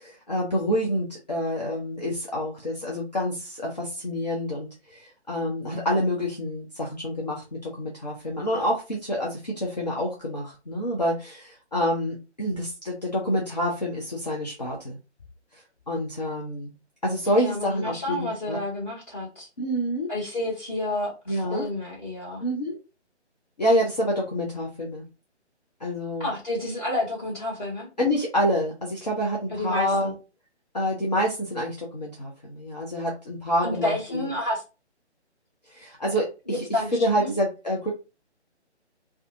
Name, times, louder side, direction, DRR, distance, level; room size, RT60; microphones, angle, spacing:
voice 1, 0.0-14.9 15.5-16.7 17.0-18.6 19.6-20.1 21.3-21.7 22.4-22.8 23.6-25.0 25.8-26.3 28.0-30.1 30.7-34.3 35.7-37.9, equal, 40° left, -2 dB, 0.5 m, -27 dB
voice 2, 17.4-19.5 20.1-22.4 26.2-27.9 29.5-30.1 33.6-34.6 36.5-37.3, left 1 dB, 10° left, -11 dB, 1.0 m, -30 dB
2.5 x 2.3 x 2.5 m, 0.30 s
figure-of-eight pair, 150°, 35 cm